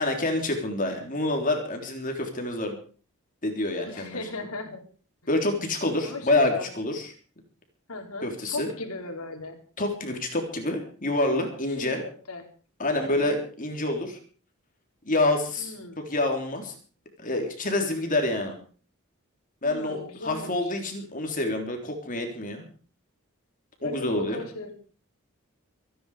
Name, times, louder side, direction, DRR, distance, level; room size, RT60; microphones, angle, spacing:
voice 1, 0.0-2.8 3.4-4.2 5.3-7.1 8.2-8.7 9.8-12.0 12.8-14.2 15.1-16.8 17.2-18.5 19.6-22.6 23.8-24.5, left 2 dB, 40° left, 3 dB, 3.5 m, -27 dB
voice 2, 3.8-4.9 6.0-6.7 7.9-9.6 11.8-12.5 13.0-13.4 15.6-16.0 19.6-20.7 23.8-24.7, left 2 dB, 85° left, 4 dB, 4.1 m, -37 dB
25.0 x 10.5 x 5.0 m, 0.41 s
head